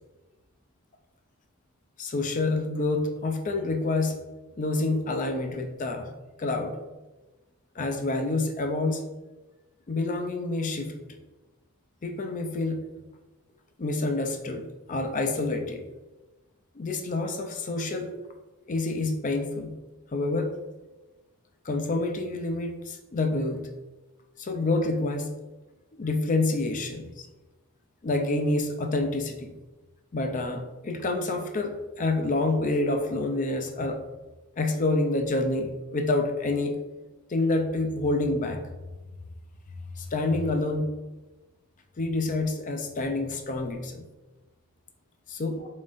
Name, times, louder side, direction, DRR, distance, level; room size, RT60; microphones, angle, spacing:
voice 1, 2.0-4.2 4.6-6.1 6.4-6.8 7.8-9.0 9.9-10.9 12.0-12.8 13.8-15.8 16.8-18.1 18.7-19.7 20.1-20.5 21.6-23.7 24.4-25.3 26.0-27.3 28.0-29.5 30.1-34.0 34.6-36.7 37.3-38.6 40.0-40.9 42.0-44.1 45.3-45.7, left 2 dB, 35° left, 5 dB, 0.5 m, -28 dB
4.1 x 3.8 x 2.5 m, 1.1 s
head